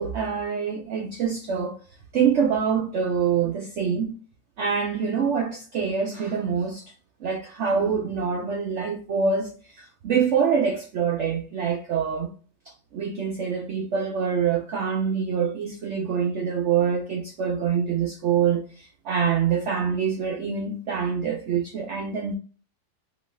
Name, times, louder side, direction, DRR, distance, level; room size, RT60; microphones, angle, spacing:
voice 1, 0.0-1.8 2.1-4.1 4.6-6.8 7.2-12.3 12.9-22.3, right 6 dB, 85° right, 0.6 m, -25 dB
3.0 x 2.4 x 3.1 m
omnidirectional pair, 1.9 m